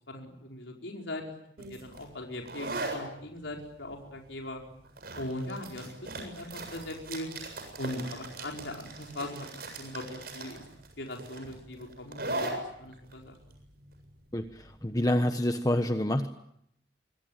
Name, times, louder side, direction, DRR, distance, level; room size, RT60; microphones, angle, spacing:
voice 1, 0.1-1.2 1.6-4.6 5.1-7.3 7.8-10.6 11.0-13.4, left 1 dB, 85° left, 1 dB, 4.9 m, -40 dB
sound 1, 1.6-15.0, right 2 dB, 55° right, 7.6 m, -40 dB
voice 2, 14.3-16.3, left 1 dB, 20° left, 7 dB, 1.2 m, -27 dB
26.5 x 23.0 x 9.1 m, 0.73 s
head